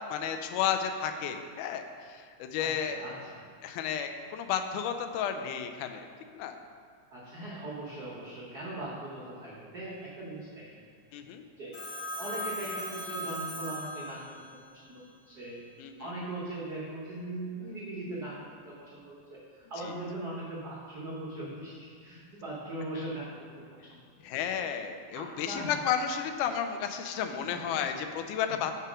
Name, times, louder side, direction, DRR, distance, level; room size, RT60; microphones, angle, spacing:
voice 1, 0.1-3.1 3.6-6.1 6.3-6.6 11.1-11.5 15.8-16.1 24.2-28.7, left 8 dB, 85° left, 7 dB, 2.1 m, -32 dB
voice 2, 2.6-3.4 7.1-10.8 11.6-11.7 12.1-15.6 16.0-18.4 18.6-21.7 22.0-23.6 23.9-24.0 25.1-25.7 27.3-27.8 28.5-28.7, right 1 dB, 90° right, -7 dB, 0.8 m, -40 dB
Telephone, 11.7-14.6, equal, 60° left, 1.9 m, -38 dB
5.7 x 4.8 x 6.1 m, 2.1 s
omnidirectional pair, 3.5 m